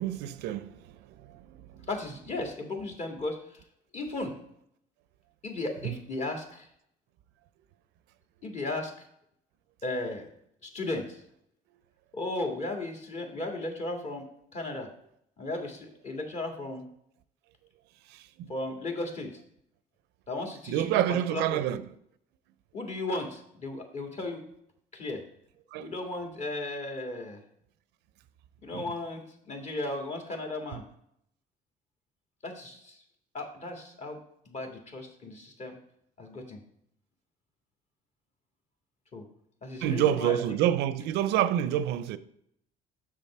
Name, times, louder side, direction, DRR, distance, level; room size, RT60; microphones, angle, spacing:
voice 1, 0.0-1.9 5.8-6.0 18.1-18.5 20.7-21.8 25.7-25.9 28.7-28.8 39.8-42.2, right 11 dB, 85° right, 0.5 m, -28 dB
voice 2, 1.9-3.6 3.9-4.3 5.4-6.7 8.4-9.1 9.8-10.2 10.6-11.2 12.1-14.9 15.4-16.9 18.5-19.4 20.3-21.8 22.7-24.4 24.9-25.2 25.8-27.4 28.6-30.9 32.4-33.0 33.3-34.2 34.5-35.8 36.2-36.6 39.1-39.3 39.6-40.6, left 2 dB, 40° left, 1.9 m, -35 dB
7.4 x 6.3 x 4.3 m
cardioid pair, 110°, 17 cm